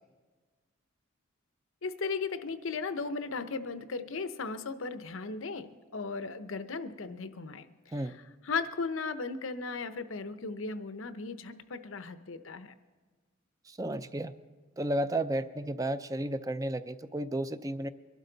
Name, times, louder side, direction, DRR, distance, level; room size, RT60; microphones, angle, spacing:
voice 1, 1.8-8.2 8.4-12.7, left 4 dB, 85° left, 11 dB, 0.8 m, -36 dB
voice 2, 13.7-14.3 14.8-17.9, right 1 dB, 15° right, 12 dB, 0.5 m, -33 dB
23.0 x 12.0 x 3.9 m, 1.4 s
head